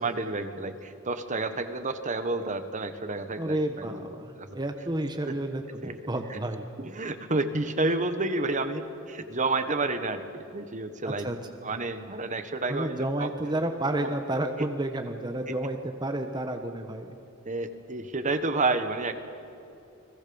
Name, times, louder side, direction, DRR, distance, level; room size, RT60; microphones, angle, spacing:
voice 1, 0.0-4.1 4.3-4.5 5.3-5.4 5.8-5.9 6.3-6.4 6.8-11.3 11.6-13.3 14.0-14.1 15.5-15.6 17.4-19.1, right 3 dB, 35° right, 9 dB, 1.3 m, -30 dB
voice 2, 3.4-6.7 11.0-11.4 12.7-17.1, right 1 dB, 20° right, 5 dB, 1.2 m, -31 dB
30.0 x 21.0 x 7.0 m, 2.6 s
head